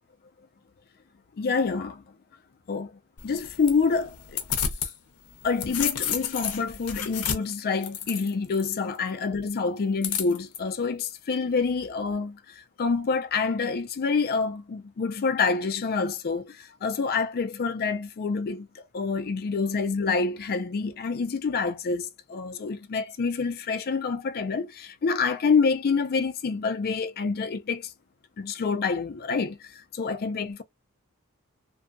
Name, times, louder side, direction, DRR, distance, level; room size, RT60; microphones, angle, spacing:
voice 1, 1.4-2.0 2.7-2.9 3.2-4.4 5.4-27.9 28.4-30.6, left 4 dB, 45° left, 0.4 m, -27 dB
sound 1, 3.2-4.9 5.3-8.6 10.0-10.6, left 8 dB, 85° left, 0.6 m, -31 dB
2.7 x 2.2 x 2.5 m
head